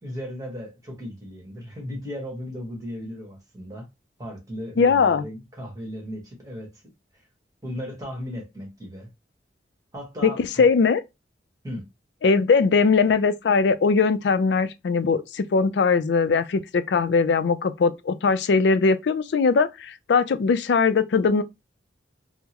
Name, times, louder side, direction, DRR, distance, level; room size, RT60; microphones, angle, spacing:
voice 1, 0.0-3.9 4.2-6.7 7.1-7.2 7.6-9.1 9.9-10.6 11.6-11.9, equal, 20° right, 1.3 m, -36 dB
voice 2, 4.8-5.2 10.2-11.0 12.2-21.4, left 4 dB, 70° left, 0.4 m, -20 dB
3.6 x 2.0 x 3.0 m
head